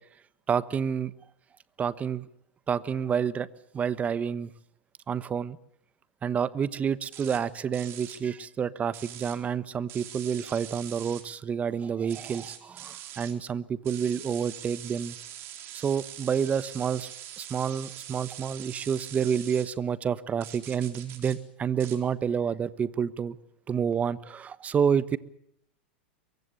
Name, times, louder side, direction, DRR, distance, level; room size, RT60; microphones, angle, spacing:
voice 1, 0.5-1.1 1.8-2.2 2.7-3.5 3.7-4.5 5.1-5.6 6.2-15.1 15.7-17.1 17.4-23.4 23.7-25.2, right 7 dB, 25° right, 17 dB, 1.2 m, -29 dB
sound 1, 7.1-7.4 7.7-8.2 8.9-9.4 9.9-11.2 12.1-13.3 13.8-19.7 20.4-21.4 21.8-22.0, right 12 dB, 45° right, 4.0 m, -43 dB
23.0 x 23.0 x 7.0 m, 0.69 s
hypercardioid pair, 100°, 6 cm